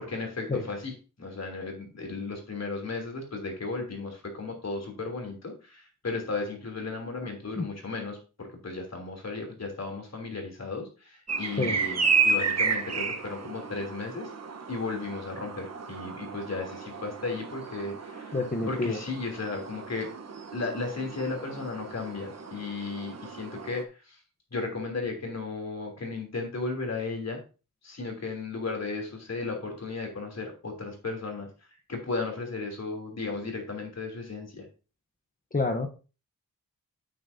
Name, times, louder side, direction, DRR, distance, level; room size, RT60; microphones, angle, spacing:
voice 1, 0.0-14.3 14.7-18.4 18.7-20.1 20.5-24.2 24.5-27.4 27.8-34.7, left 3 dB, 50° left, 2 dB, 3.1 m, -35 dB
sound 1, 11.3-23.8, right 4 dB, 50° right, 1.1 m, -32 dB
voice 2, 18.3-19.0 35.5-35.9, left 3 dB, 25° left, 3 dB, 0.9 m, -28 dB
9.1 x 8.6 x 2.7 m, 0.33 s
wide cardioid pair, 125°, 34 cm